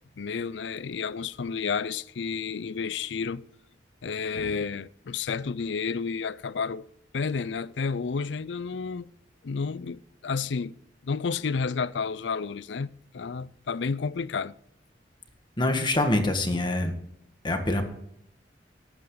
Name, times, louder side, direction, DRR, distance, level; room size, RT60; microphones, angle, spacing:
voice 1, 0.2-3.5 4.0-6.9 7.1-9.1 9.4-10.8 11.0-14.5, left 5 dB, 80° left, 0.5 m, -31 dB
voice 2, 15.6-16.9 17.4-17.8, left 1 dB, 25° left, 1.7 m, -25 dB
18.0 x 8.9 x 3.9 m
head